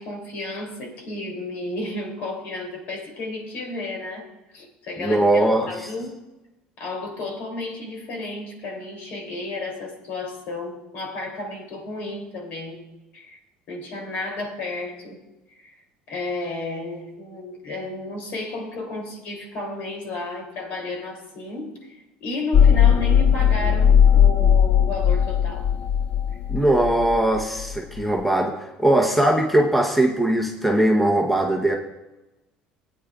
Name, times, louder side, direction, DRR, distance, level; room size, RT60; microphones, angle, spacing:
voice 1, 0.0-6.2 6.8-12.8 13.1-13.4 13.7-15.2 15.5-15.8 16.1-25.7, left 2 dB, 65° left, 1 dB, 2.9 m, -32 dB
voice 2, 5.0-5.9 26.5-31.8, right 1 dB, 5° left, 1 dB, 0.9 m, -20 dB
sound 1, 22.5-28.0, left 8 dB, 35° left, 0.3 m, -18 dB
18.0 x 9.1 x 2.4 m, 1.0 s
cardioid pair, 135°, 3 cm